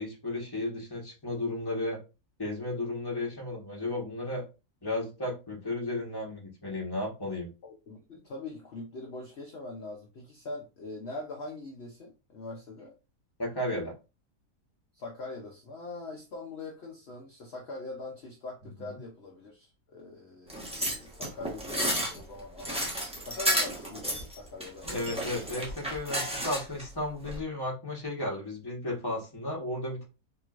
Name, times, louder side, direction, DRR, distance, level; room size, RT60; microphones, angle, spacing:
voice 1, 0.0-2.0 2.4-4.4 4.8-7.5 13.4-13.9 18.8-18.9 24.8-30.1, left 1 dB, 15° left, -2 dB, 1.2 m, -34 dB
voice 2, 7.6-12.9 14.9-24.9 25.5-25.7, left 2 dB, 50° left, 0 dB, 0.8 m, -42 dB
sound 1, 20.5-26.8 27.2-27.4, equal, 5° right, 1.0 m, -32 dB
4.4 x 3.0 x 2.5 m, 0.30 s
omnidirectional pair, 1.7 m